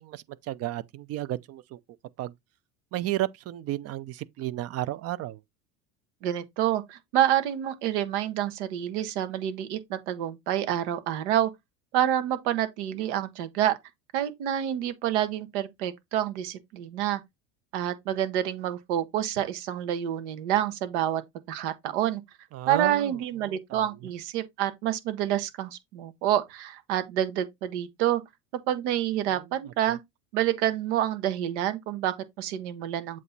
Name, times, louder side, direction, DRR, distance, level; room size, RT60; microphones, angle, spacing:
voice 1, 0.0-1.8 2.2-2.3 2.9-5.4 22.5-23.1 23.7-23.8, right 14 dB, 45° right, 0.6 m, -32 dB
voice 2, 6.2-11.5 11.9-13.8 14.1-17.2 17.7-21.2 21.5-22.2 22.7-28.2 28.7-30.0 30.3-33.2, right 11 dB, 80° right, 1.3 m, -28 dB
7.8 x 3.1 x 4.0 m
supercardioid pair, 115°, 34 cm